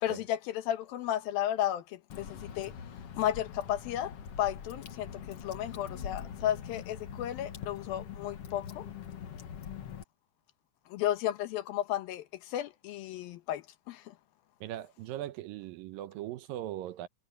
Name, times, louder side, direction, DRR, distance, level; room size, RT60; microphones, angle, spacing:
voice 1, 0.0-2.7 3.2-8.9 10.9-14.1, left 12 dB, 80° left, 2.9 m, -33 dB
Water / Drip, 2.1-10.0, left 7 dB, 55° left, 1.9 m, -43 dB
voice 2, 14.6-17.1, right 13 dB, 75° right, 2.5 m, -39 dB
omnidirectional pair, 4.2 m